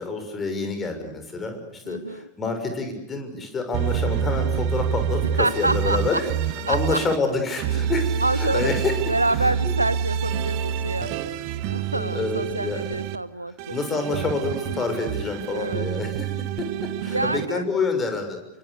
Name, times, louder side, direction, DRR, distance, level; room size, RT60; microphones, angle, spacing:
voice 1, 0.0-6.3 6.7-8.9 9.4-9.8 11.9-12.9 13.7-16.3 16.6-18.4, left 3 dB, 20° left, 6 dB, 6.5 m, -28 dB
voice 2, 1.8-2.3 5.4-6.2 6.7-7.0 8.2-8.7 9.1-14.0 15.5-15.9 17.0-17.6, right 2 dB, 85° right, 18 dB, 1.0 m, -27 dB
sound 1, 3.7-7.2 7.6-13.2 13.6-17.5, right 8 dB, 45° right, 1.5 m, -27 dB
29.0 x 24.5 x 6.8 m, 0.89 s
figure-of-eight pair, 90°, 0 cm